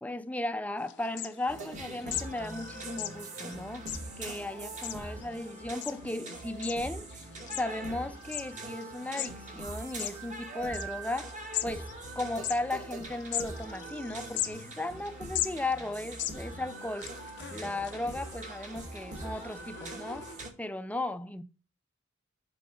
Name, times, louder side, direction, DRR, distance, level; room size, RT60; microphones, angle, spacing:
voice 1, 0.0-3.9 4.2-7.3 7.6-17.2 17.5-21.4, left 2 dB, 5° left, 0.4 m, -36 dB
sound 1, 0.8-20.4, left 12 dB, 60° left, 0.7 m, -41 dB
sound 2, 1.5-20.5, right 2 dB, 40° right, 1.4 m, -42 dB
6.3 x 4.6 x 5.0 m
head